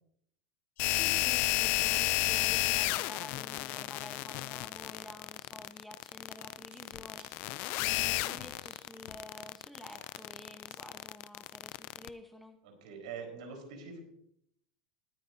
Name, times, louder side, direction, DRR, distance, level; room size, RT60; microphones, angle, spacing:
sound 1, 0.8-12.1, left 20 dB, 45° left, 0.3 m, -32 dB
voice 1, 0.9-7.3 7.7-12.6, left 1 dB, ahead, 6 dB, 0.9 m, -50 dB
sound 2, 3.9-11.5, right 4 dB, 25° right, 4.7 m, -66 dB
voice 2, 12.6-14.0, right 5 dB, 75° right, 2 dB, 4.2 m, -44 dB
21.0 x 9.2 x 2.7 m, 0.71 s
supercardioid pair, 155°, 4 cm